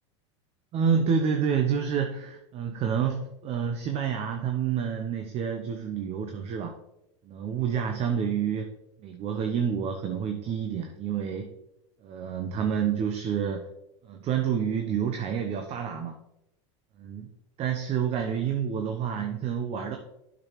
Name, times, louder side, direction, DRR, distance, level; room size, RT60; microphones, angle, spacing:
voice 1, 0.7-6.7 7.2-8.7 9.0-11.5 12.0-13.7 14.0-16.2 17.0-17.3 17.6-20.0, right 7 dB, 40° right, 5 dB, 0.9 m, -28 dB
8.7 x 6.3 x 3.1 m, 0.86 s
hypercardioid pair, 95°, 16 cm